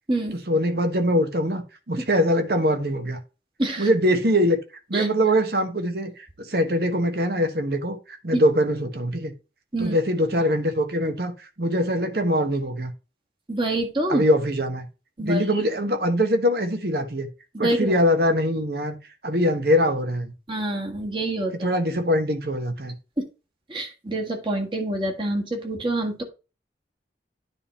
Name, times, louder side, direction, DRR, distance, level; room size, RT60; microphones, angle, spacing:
voice 1, 0.5-1.6 1.9-3.2 3.8-4.6 4.9-9.3 9.8-12.9 14.1-14.8 15.2-17.3 17.6-19.0 19.2-20.3 21.6-22.9, equal, 60° right, 1.2 m, -23 dB
voice 2, 13.5-14.2 15.2-15.4 17.6-17.9 20.5-21.6 23.2-23.3 23.7-26.2, right 1 dB, 30° right, 1.6 m, -26 dB
9.8 x 3.6 x 4.2 m
head